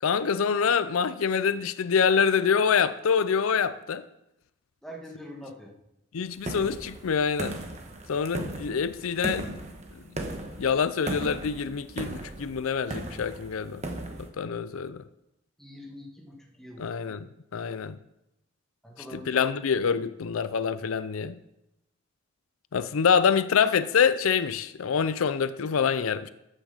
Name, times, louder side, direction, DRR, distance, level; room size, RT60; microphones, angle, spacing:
voice 1, 0.0-4.0 6.1-7.6 8.1-9.6 10.6-13.8 14.2-15.0 16.8-17.3 17.5-18.0 19.1-21.4 22.7-26.3, left 6 dB, 85° left, 0.5 m, -26 dB
voice 2, 4.8-5.8 15.6-16.8 18.8-19.7, left 1 dB, ahead, 1.6 m, -43 dB
sound 1, 6.4-14.3, right 1 dB, 35° right, 1.2 m, -37 dB
13.5 x 9.0 x 3.9 m
head